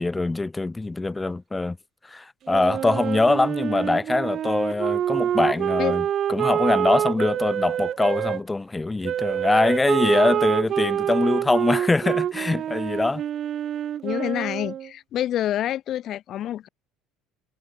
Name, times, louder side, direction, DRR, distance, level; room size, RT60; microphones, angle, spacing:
voice 1, 0.0-1.8 2.0-13.2, left 2 dB, 15° left, 3.1 m, -23 dB
Wind instrument woodwind instrument, 2.5-8.4 9.0-14.9, right 10 dB, 45° right, 0.9 m, -26 dB
voice 2, 14.0-16.7, left 12 dB, 50° left, 2.9 m, -27 dB
figure-of-eight pair, 60°, 0 cm